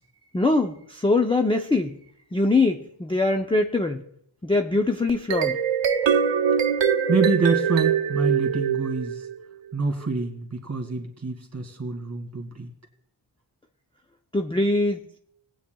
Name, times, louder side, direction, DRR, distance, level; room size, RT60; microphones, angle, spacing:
voice 1, 0.3-2.0 2.3-4.0 4.4-5.6 14.3-15.0, left 2 dB, 10° left, 4 dB, 0.4 m, -22 dB
sound 1, 5.1-9.4, right 7 dB, 65° right, 0.7 m, -23 dB
voice 2, 7.1-9.3 9.7-12.7, right 3 dB, 30° right, 3 dB, 2.2 m, -26 dB
20.0 x 8.6 x 2.3 m, 0.70 s
wide cardioid pair, 115°, 47 cm